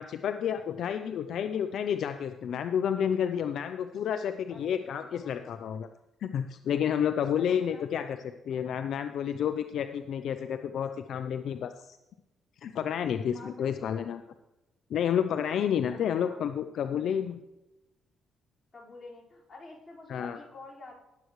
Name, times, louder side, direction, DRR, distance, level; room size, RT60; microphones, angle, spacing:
voice 1, 0.0-5.9 6.2-8.2 8.5-12.0 12.6-14.2 14.9-17.4 20.1-20.4, left 8 dB, 70° left, 9 dB, 0.5 m, -30 dB
voice 2, 4.5-5.5 7.2-7.9 13.3-14.0 15.9-16.4 18.7-20.9, left 3 dB, 30° left, -5 dB, 4.8 m, -49 dB
18.0 x 7.9 x 3.2 m, 0.98 s
cardioid pair, 90°, 0 cm